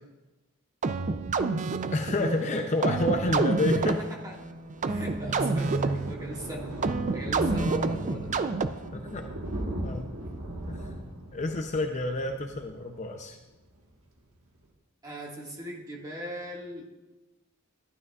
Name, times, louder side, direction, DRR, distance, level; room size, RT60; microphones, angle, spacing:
sound 1, 0.8-9.0, right 3 dB, 35° right, 0.4 m, -29 dB
voice 1, 1.9-4.0 5.4-5.5 8.9-9.3 9.8-10.1 10.7-13.4, left 2 dB, 35° left, 5 dB, 0.6 m, -29 dB
Thunder, 4.3-13.4 13.7-14.0 14.3-14.4 14.6-14.7, right 1 dB, 80° right, 1.4 m, -39 dB
voice 2, 4.9-6.8 7.1-8.3 15.0-16.9, equal, 20° right, -2 dB, 1.8 m, -40 dB
12.0 x 11.5 x 2.4 m, 1.1 s
head